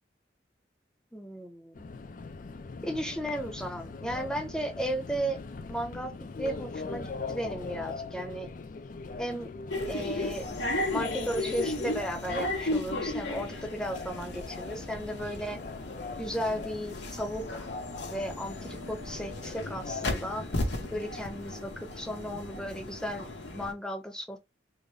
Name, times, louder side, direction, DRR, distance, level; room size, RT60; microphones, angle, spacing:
voice 1, 1.1-1.8 2.8-5.4 5.7-6.1 6.4-8.5 9.2-9.5 9.9-10.6 10.9-15.6 16.2-17.7 18.1-20.4 20.9-23.3 23.5-24.4, equal, 5° left, 0.6 m, -35 dB
Subway metro underground, 1.7-21.0, left 4 dB, 50° left, 0.4 m, -42 dB
sound 1, 9.7-23.7, left 2 dB, 80° left, 1.0 m, -35 dB
3.8 x 2.1 x 3.4 m
head